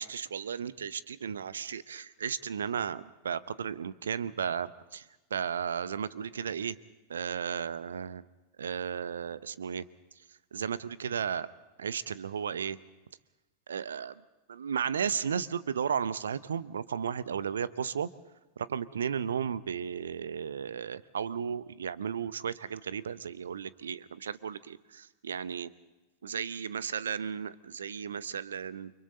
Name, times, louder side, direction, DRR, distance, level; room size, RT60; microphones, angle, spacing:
voice 1, 0.0-5.0 5.3-6.8 7.1-8.2 8.6-9.8 10.5-11.5 11.8-12.8 13.7-14.1 14.5-18.1 18.6-25.7 26.2-28.9, right 7 dB, 70° right, 18 dB, 0.7 m, -34 dB
29.5 x 24.5 x 4.1 m, 1.1 s
figure-of-eight pair, 90°, 0 cm